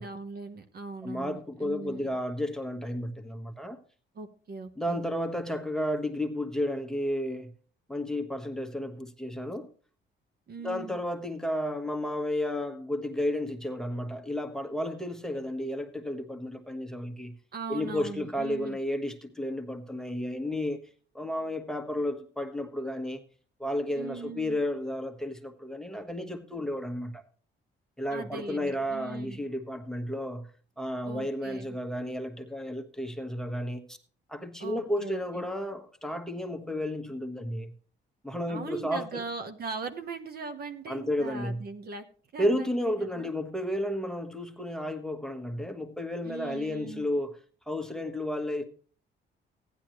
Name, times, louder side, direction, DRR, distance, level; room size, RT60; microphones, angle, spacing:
voice 1, 0.0-2.1 4.1-5.0 10.5-11.0 17.5-18.8 24.0-24.6 28.1-29.4 31.0-31.8 34.6-35.5 38.5-42.0 42.3-42.7 43.0-43.3 46.2-47.1, right 4 dB, 50° right, 1.2 m, -40 dB
voice 2, 1.0-3.8 4.8-7.5 7.9-9.7 10.6-17.4 17.7-20.8 21.1-23.2 23.6-27.2 28.0-30.5 30.8-34.0 34.3-37.7 38.2-39.2 40.9-41.7 42.4-47.4 47.7-48.6, left 1 dB, 5° left, 1.3 m, -32 dB
15.0 x 10.5 x 3.1 m
cardioid pair, 90°, 20 cm